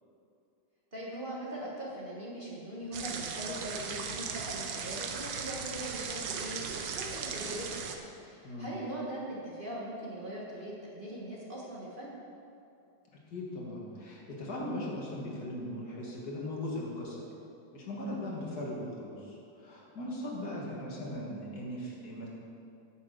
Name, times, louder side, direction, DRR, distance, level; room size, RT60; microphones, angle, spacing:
voice 1, 0.9-12.1 20.7-21.0, right 1 dB, 30° right, -6 dB, 1.4 m, -41 dB
sound 1, 2.9-8.0, right 6 dB, 75° right, 1.4 m, -38 dB
voice 2, 8.4-8.8 13.3-17.3 17.7-22.3, left 1 dB, 55° left, -3 dB, 2.1 m, -39 dB
9.0 x 6.6 x 6.4 m, 2.6 s
omnidirectional pair, 2.0 m